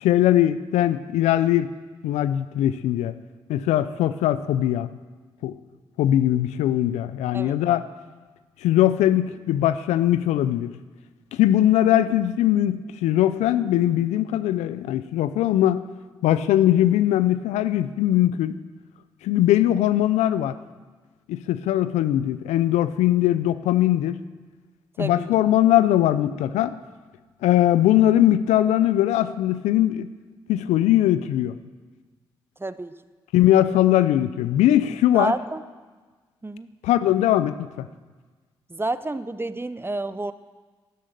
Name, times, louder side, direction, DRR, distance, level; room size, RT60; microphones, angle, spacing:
voice 1, 0.0-1.7 2.0-3.1 3.5-4.9 5.4-5.6 6.0-7.8 8.6-10.7 11.3-15.8 16.2-18.5 19.2-20.6 21.3-24.2 25.0-26.7 27.4-30.1 30.5-31.5 33.3-35.3 36.8-37.9, left 12 dB, 80° left, 14 dB, 0.5 m, -20 dB
voice 2, 32.6-32.9 35.1-35.6 36.4-36.7 38.7-40.3, right 2 dB, 20° right, 14 dB, 0.8 m, -29 dB
12.0 x 11.5 x 6.7 m, 1.4 s
hypercardioid pair, 45°, 11 cm